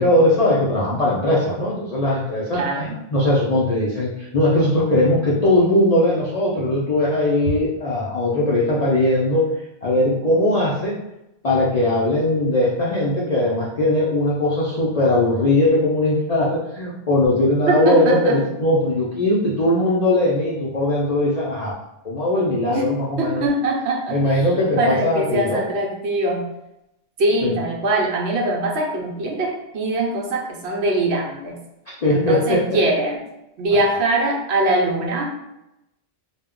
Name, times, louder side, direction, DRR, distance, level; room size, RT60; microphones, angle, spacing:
voice 1, 0.0-9.5 9.8-10.9 11.4-21.7 22.0-23.4 24.1-25.6 27.4-27.6 32.0-32.6, left 1 dB, 60° left, -6 dB, 0.4 m, -19 dB
voice 2, 2.5-3.0 17.7-18.3 22.7-22.9 23.2-24.3 24.8-26.4 27.2-31.6 32.1-33.2 33.6-35.3, right 2 dB, 65° right, -1 dB, 0.8 m, -22 dB
2.2 x 2.0 x 3.5 m, 0.88 s
omnidirectional pair, 1.3 m